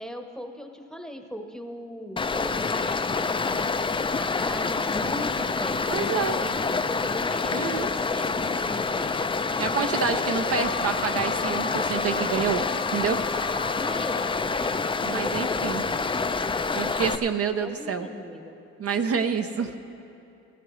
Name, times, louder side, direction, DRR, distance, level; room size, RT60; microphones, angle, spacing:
voice 1, 0.0-10.0 13.7-14.8 15.1-16.5 17.6-18.6 19.6-19.8, equal, ahead, 5 dB, 0.9 m, -39 dB
Stream, 2.2-17.2, left 4 dB, 15° left, 0.4 m, -27 dB
voice 2, 5.9-6.4 7.5-7.9 9.6-12.6 12.9-13.2 15.0-15.8 16.8-18.1 18.8-19.7, right 6 dB, 50° right, 6 dB, 0.7 m, -27 dB
Wind instrument woodwind instrument, 10.5-14.6, left 6 dB, 40° left, 0.8 m, -39 dB
18.0 x 15.0 x 3.1 m, 2.7 s
cardioid pair, 90°, 30 cm